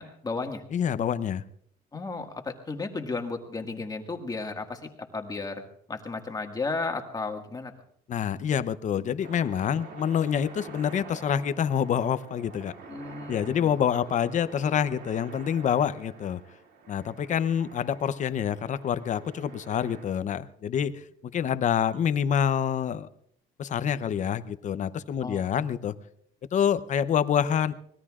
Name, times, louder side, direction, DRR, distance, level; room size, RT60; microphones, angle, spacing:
voice 1, 0.0-0.6 1.9-5.6 5.9-7.7 12.9-13.7 25.2-25.4, left 3 dB, 20° left, 3 dB, 1.8 m, -34 dB
voice 2, 0.7-1.4 8.1-12.7 13.3-16.4 16.9-23.1 23.6-26.0 26.5-27.7, left 8 dB, 45° left, 13 dB, 0.8 m, -27 dB
sound 1, 9.2-20.1, right 4 dB, 75° right, 2.6 m, -46 dB
25.0 x 20.0 x 2.5 m, 0.70 s
cardioid pair, 110°, 17 cm